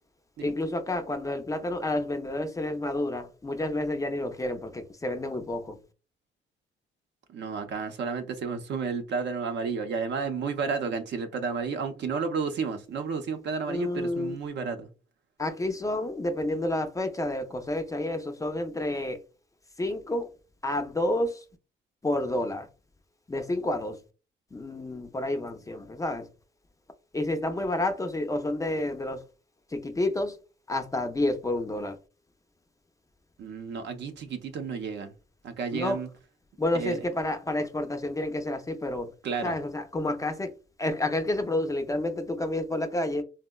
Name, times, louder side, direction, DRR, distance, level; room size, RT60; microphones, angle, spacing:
voice 1, 0.4-5.8 13.7-14.4 15.4-19.2 19.8-20.3 20.6-21.4 22.0-22.7 23.3-24.0 24.5-26.3 27.1-29.2 29.7-30.4 30.7-32.0 35.7-36.0 36.6-39.1 39.4-40.5 40.8-43.2, left 1 dB, 15° left, 0.4 m, -29 dB
voice 2, 7.3-14.9 33.4-35.1 35.4-36.1 36.7-37.0 39.2-39.6, right 5 dB, 60° right, 0.6 m, -32 dB
3.5 x 2.1 x 2.2 m
cardioid pair, 90°, 20 cm